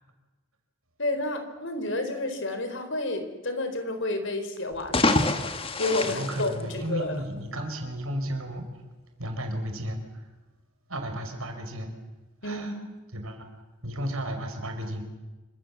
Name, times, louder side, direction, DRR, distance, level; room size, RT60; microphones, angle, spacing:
voice 1, 1.0-5.4 5.8-7.3 12.4-12.8, left 2 dB, 55° left, 7 dB, 4.5 m, -30 dB
Miscellaneous Splash Large, 4.7-7.3, left 2 dB, 25° left, 1.7 m, -27 dB
voice 2, 6.0-8.6 9.2-10.3 10.9-11.9 12.4-12.7 13.1-13.5 13.8-15.0, equal, 75° right, 5 dB, 5.6 m, -33 dB
28.0 x 25.5 x 7.6 m, 1.2 s
head